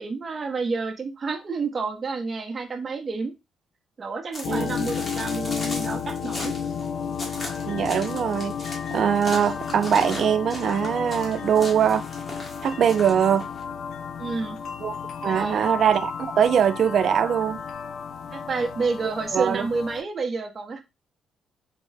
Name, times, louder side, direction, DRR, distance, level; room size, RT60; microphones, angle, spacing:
voice 1, 0.0-3.3 4.0-6.5 14.2-14.6 15.2-15.7 18.3-20.8, right 4 dB, 40° right, 0.7 m, -29 dB
sound 1, 4.3-13.6, left 2 dB, 30° left, 1.2 m, -38 dB
sound 2, 4.4-20.0, left 7 dB, 70° left, 0.4 m, -33 dB
voice 2, 7.6-12.0 12.6-13.5 14.8-14.9 15.2-17.6 19.3-19.7, right 8 dB, 60° right, 0.4 m, -22 dB
3.6 x 2.1 x 3.2 m
cardioid pair, 90°, 0 cm